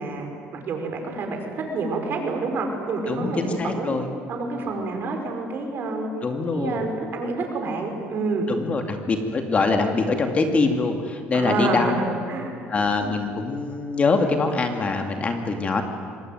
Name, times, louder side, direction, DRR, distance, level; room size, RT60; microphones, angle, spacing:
voice 1, 0.0-4.0 4.3-6.1 6.5-8.5 11.3-12.6, right 3 dB, 50° right, 3 dB, 5.3 m, -28 dB
voice 2, 3.1-4.1 6.2-6.8 8.5-11.9 12.7-15.8, left 3 dB, 30° left, 5 dB, 2.3 m, -24 dB
25.5 x 19.5 x 9.3 m, 2.2 s
cardioid pair, 125°, 5 cm